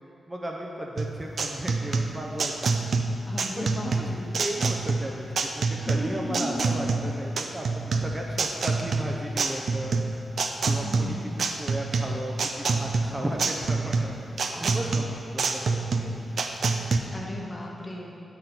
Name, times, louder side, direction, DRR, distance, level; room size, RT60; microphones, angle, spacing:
voice 1, 0.3-2.8 3.6-4.1 4.3-10.0 10.6-16.2, right 1 dB, 20° right, -1 dB, 0.6 m, -35 dB
sound 1, 1.0-17.0, right 4 dB, 65° right, 0.4 m, -27 dB
voice 2, 3.3-4.3 5.9-6.7 10.8-11.4 17.1-18.1, left 1 dB, 20° left, -2 dB, 1.0 m, -35 dB
9.4 x 4.0 x 4.3 m, 2.6 s
wide cardioid pair, 100°, 0 cm